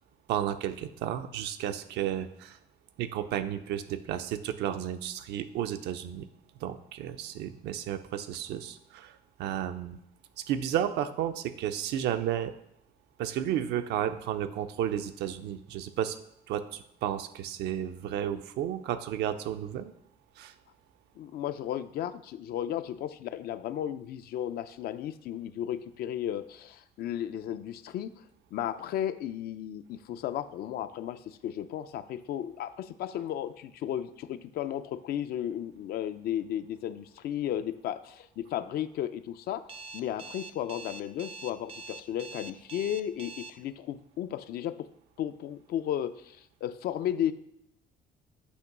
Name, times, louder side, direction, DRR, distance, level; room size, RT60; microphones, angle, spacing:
voice 1, 0.3-2.6 3.0-6.3 6.6-9.1 9.4-10.0 10.4-12.5 13.2-16.2 16.5-19.9 20.4-20.5, right 10 dB, 80° right, 9 dB, 0.6 m, -32 dB
voice 2, 21.2-28.1 28.5-39.7 39.9-44.9 45.2-47.3, left 10 dB, 65° left, 12 dB, 0.4 m, -34 dB
Alarm, 39.7-43.5, right 3 dB, 35° right, 0.5 m, -43 dB
8.2 x 3.0 x 5.9 m, 0.75 s
cardioid pair, 110°, 17 cm